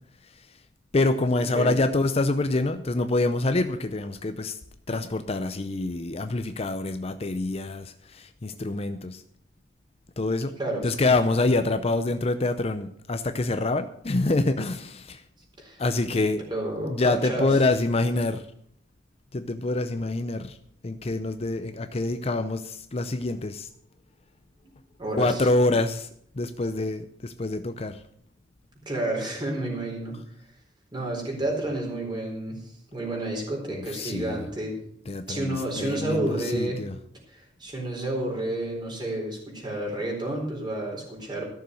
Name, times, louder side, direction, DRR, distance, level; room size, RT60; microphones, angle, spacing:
voice 1, 0.9-4.6 4.9-9.2 10.2-10.6 10.8-15.2 15.8-16.4 16.9-18.5 19.3-20.6 20.8-23.7 25.2-26.1 26.3-28.0 33.7-34.5 35.1-37.0, left 2 dB, 35° left, 10 dB, 0.6 m, -26 dB
voice 2, 16.5-17.6 25.0-25.5 28.9-30.2 30.9-32.6 32.9-34.8 35.3-36.8 37.3-41.5, right 1 dB, 25° right, 0 dB, 4.1 m, -30 dB
13.5 x 7.0 x 7.7 m, 0.67 s
head